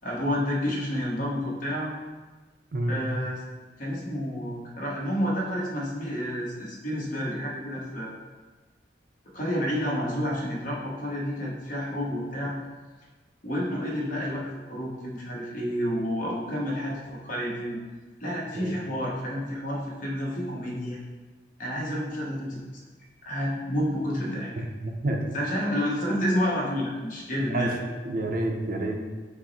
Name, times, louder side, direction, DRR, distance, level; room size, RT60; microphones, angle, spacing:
voice 1, 0.0-1.9 2.9-3.4 3.8-8.2 9.3-12.5 13.4-17.8 18.2-21.0 21.6-22.6 23.2-24.5 25.3-27.7, equal, 45° left, -4 dB, 1.0 m, -29 dB
voice 2, 2.7-3.0 18.5-18.7 24.6-25.4 27.5-27.7 28.0-29.0, right 1 dB, 50° right, 2 dB, 0.5 m, -29 dB
5.9 x 2.0 x 4.0 m, 1.3 s
head